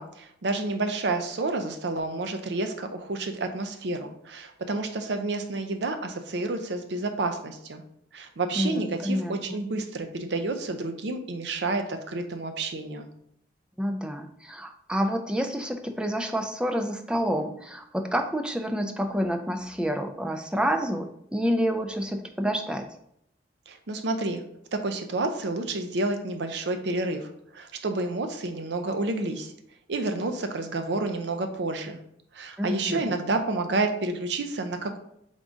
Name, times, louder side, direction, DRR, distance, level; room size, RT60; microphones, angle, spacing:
voice 1, 0.0-7.8 8.1-13.1 23.7-24.4 24.7-29.5 29.9-32.0 32.3-35.0, right 2 dB, 70° right, 6 dB, 0.5 m, -30 dB
voice 2, 8.6-9.6 13.8-22.9 32.6-33.0, equal, 5° right, 5 dB, 0.3 m, -28 dB
3.7 x 3.6 x 3.8 m, 0.74 s
head